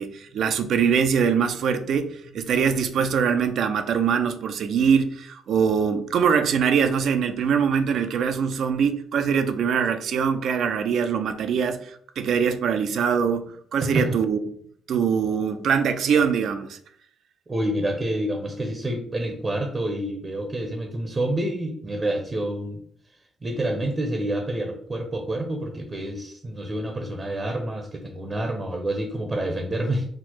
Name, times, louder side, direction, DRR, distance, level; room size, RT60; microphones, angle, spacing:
voice 1, 0.0-14.4 14.9-16.8, right 7 dB, 70° right, 0.5 m, -23 dB
voice 2, 17.5-22.8 23.4-30.1, right 1 dB, 30° right, 0.7 m, -28 dB
4.5 x 2.0 x 4.4 m
cardioid pair, 90°, 0 cm